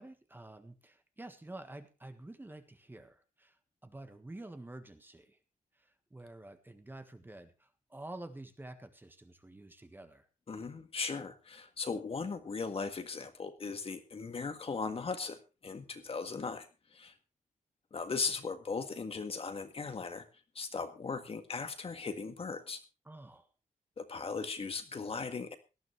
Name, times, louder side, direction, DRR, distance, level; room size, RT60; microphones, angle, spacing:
voice 1, 0.0-5.4 5.7-10.3 23.0-23.5, right 2 dB, 15° right, 8 dB, 1.5 m, -49 dB
voice 2, 10.5-16.7 16.9-17.2 17.9-20.3 20.6-22.8 24.0-25.5, left 4 dB, 45° left, 8 dB, 1.8 m, -38 dB
18.5 x 12.0 x 3.3 m, 0.29 s
wide cardioid pair, 130°, 14 cm